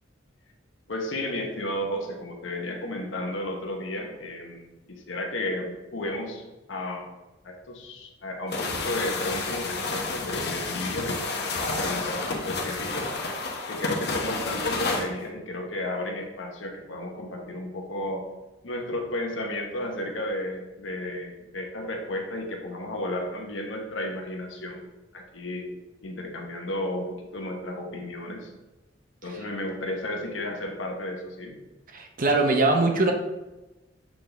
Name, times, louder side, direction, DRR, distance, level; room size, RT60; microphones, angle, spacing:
voice 1, 0.9-7.1 7.4-13.1 13.7-18.2 18.6-24.8 25.1-25.7 26.0-28.5 29.2-31.6, left 1 dB, 90° left, 2 dB, 1.0 m, -33 dB
Snowy Pushing, 8.5-15.1, left 3 dB, 60° left, 0.9 m, -30 dB
voice 2, 31.9-33.1, right 2 dB, 45° right, 3 dB, 0.8 m, -22 dB
7.3 x 4.4 x 3.4 m, 1.1 s
head